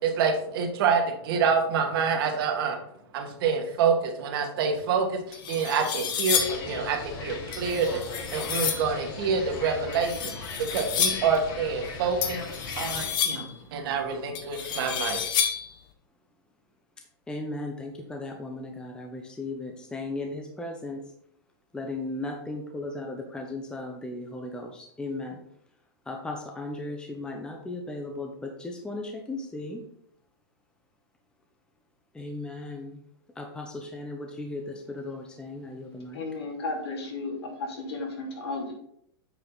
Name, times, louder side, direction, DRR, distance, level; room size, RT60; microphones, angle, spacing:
voice 1, 0.0-2.8 3.1-8.0 8.3-12.4 12.8-15.2, right 5 dB, 60° right, 3 dB, 1.7 m, -27 dB
sound 1, 4.8-4.9 5.3-6.7 7.5-8.9 9.9-11.4 12.2-13.6 14.3-15.8, left 8 dB, 35° left, 1.0 m, -30 dB
sound 2, 6.3-13.1, left 3 dB, 50° left, 2.1 m, -38 dB
voice 2, 17.3-21.0 21.7-25.4 26.1-29.8 32.1-33.0 33.4-36.2, left 2 dB, 5° left, 2 dB, 0.8 m, -36 dB
voice 3, 36.1-38.7, left 3 dB, 70° left, 0 dB, 2.9 m, -34 dB
8.5 x 5.0 x 4.0 m, 0.71 s
hypercardioid pair, 140°, 14 cm